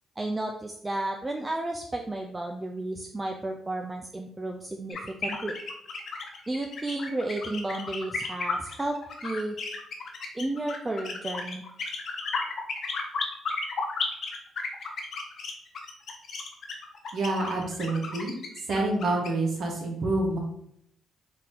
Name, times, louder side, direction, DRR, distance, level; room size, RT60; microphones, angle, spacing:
voice 1, 0.2-5.6 6.5-9.6 10.3-11.6, right 2 dB, 20° right, 2 dB, 0.4 m, -32 dB
sound 1, 4.9-19.3, left 4 dB, 60° left, 0.7 m, -34 dB
voice 2, 17.1-18.3 18.7-20.4, right 2 dB, 60° right, -1 dB, 1.2 m, -27 dB
3.9 x 2.7 x 3.8 m, 0.71 s
cardioid pair, 90°, 0 cm